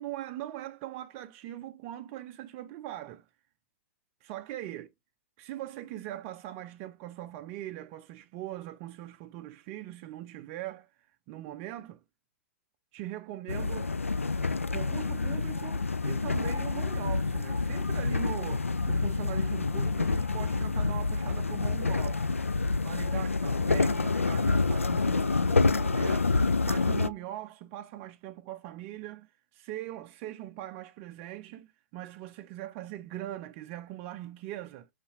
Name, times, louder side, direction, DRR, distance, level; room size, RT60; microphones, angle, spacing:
voice 1, 0.0-3.3 4.2-4.9 5.4-12.0 12.9-13.9 14.7-22.4 22.8-26.4 26.7-34.9, right 14 dB, 35° right, 0.4 m, -41 dB
sound 1, 13.5-27.1, left 3 dB, 85° left, 0.4 m, -28 dB
5.4 x 3.2 x 2.7 m
figure-of-eight pair, 105°, 7 cm